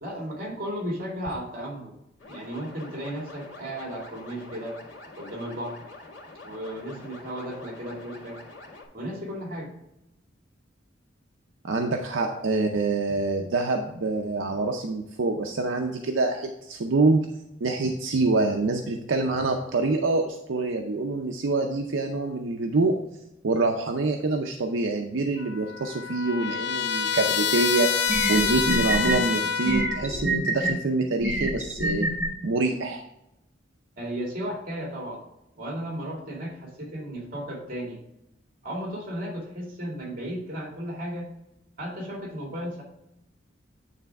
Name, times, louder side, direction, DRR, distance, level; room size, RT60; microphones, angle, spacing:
voice 1, 0.0-1.9 2.3-4.8 5.2-5.8 6.4-8.4 8.9-9.7 12.1-12.3 34.0-35.2 35.6-38.0 38.6-41.3 41.8-42.8, equal, 50° right, -1 dB, 2.2 m, -34 dB
sound 1, 2.2-8.8, left 2 dB, 85° left, 2.0 m, -45 dB
voice 2, 11.6-17.2 17.6-23.0 23.4-27.9 28.3-32.1 32.4-33.0, right 3 dB, 85° right, 3 dB, 0.6 m, -26 dB
Trumpet, 25.4-30.1, left 7 dB, 65° left, 0.5 m, -27 dB
sound 2, 27.6-27.7 28.1-29.2 29.7-30.7 31.2-32.3, right 2 dB, 10° right, 1.0 m, -26 dB
9.2 x 3.4 x 4.6 m, 0.87 s
head